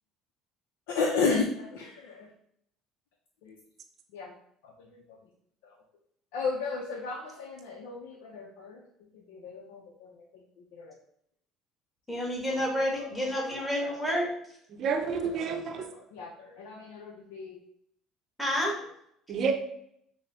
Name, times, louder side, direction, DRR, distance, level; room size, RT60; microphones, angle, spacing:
voice 1, 0.9-2.3 3.4-3.6 4.1-4.3 5.1-5.2 5.6-5.7 6.3-8.8 9.3-10.1 10.7-11.0 12.5-12.6 13.5-13.9 15.8-17.6, left 4 dB, 85° left, -1 dB, 0.5 m, -33 dB
voice 2, 12.1-14.3 18.4-18.8, equal, 5° left, -2 dB, 1.4 m, -29 dB
voice 3, 14.7-15.8 19.3-19.5, right 5 dB, 55° right, 5 dB, 0.6 m, -29 dB
5.9 x 2.1 x 2.7 m, 0.70 s
supercardioid pair, 90°, 0 cm